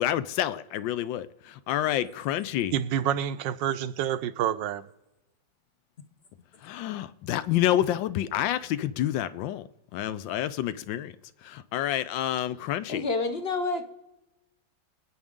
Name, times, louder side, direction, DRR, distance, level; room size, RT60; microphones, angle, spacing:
voice 1, 0.0-2.7 6.6-9.7 9.9-11.1 11.4-13.1, left 12 dB, 85° left, 1.4 m, -28 dB
voice 2, 2.7-4.9, right 10 dB, 80° right, 1.2 m, -28 dB
voice 3, 12.9-13.8, left 3 dB, 45° left, 0.9 m, -28 dB
25.0 x 8.8 x 3.7 m
omnidirectional pair, 2.0 m